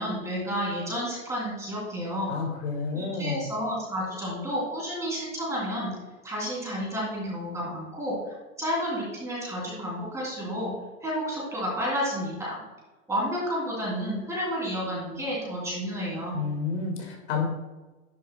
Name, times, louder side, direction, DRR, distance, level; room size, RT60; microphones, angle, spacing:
voice 1, 0.0-2.3 2.9-5.9 6.2-10.7 11.0-12.5 13.1-16.4, equal, 5° right, -5 dB, 2.9 m, -31 dB
voice 2, 2.3-3.4 16.3-17.4, left 5 dB, 50° left, 1 dB, 2.1 m, -30 dB
11.0 x 10.0 x 2.2 m, 1.2 s
hypercardioid pair, 165°, 43 cm